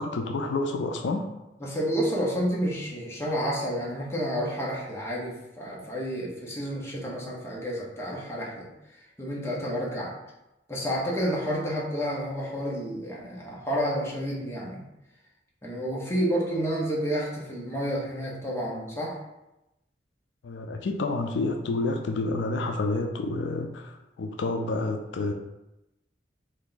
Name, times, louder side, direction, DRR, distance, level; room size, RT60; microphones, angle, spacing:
voice 1, 0.0-1.3 20.4-25.3, left 2 dB, 85° left, 4 dB, 0.4 m, -29 dB
voice 2, 1.6-8.7 9.2-10.1 10.7-14.8 15.6-19.2, equal, 15° left, -4 dB, 0.8 m, -30 dB
3.4 x 2.6 x 3.8 m, 0.93 s
head